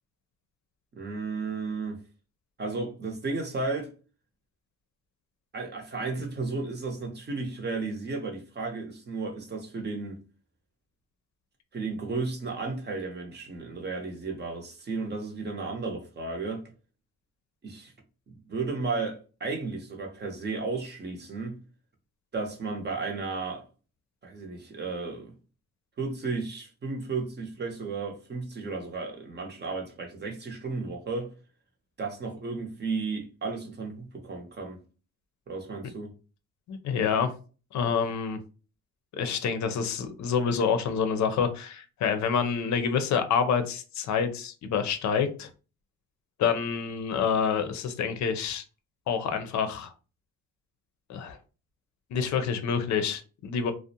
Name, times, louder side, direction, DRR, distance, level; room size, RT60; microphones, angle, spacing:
voice 1, 1.0-2.0 2.6-3.9 5.5-10.2 11.7-16.7 17.6-17.9 18.3-21.6 22.3-23.7 24.2-25.3 26.0-31.3 32.0-34.8 35.5-36.1, right 3 dB, 35° right, 0.7 m, -34 dB
voice 2, 36.7-37.3 37.7-38.4 39.2-45.5 46.4-48.6 49.1-49.9 51.1-51.4 52.1-53.7, left 6 dB, 70° left, 0.5 m, -27 dB
2.5 x 2.1 x 2.7 m
cardioid pair, 90°, 30 cm